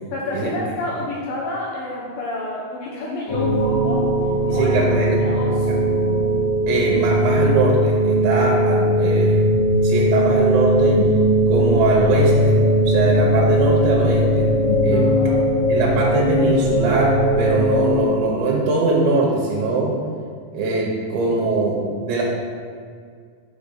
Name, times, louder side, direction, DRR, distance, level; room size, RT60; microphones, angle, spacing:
voice 1, 0.1-4.1 4.4-4.8 5.1-5.9 14.9-15.4, left 1 dB, 85° left, -3 dB, 2.0 m, -29 dB
sound 1, 3.3-18.0, equal, 60° left, 2.6 m, -18 dB
voice 2, 4.5-5.2 5.7-5.8 6.7-9.4 9.8-11.0 11.5-14.5 14.8-15.1 15.7-20.0 20.5-22.2, right 3 dB, 85° right, -2 dB, 3.1 m, -21 dB
6.9 x 4.8 x 5.6 m, 2.1 s
omnidirectional pair, 5.2 m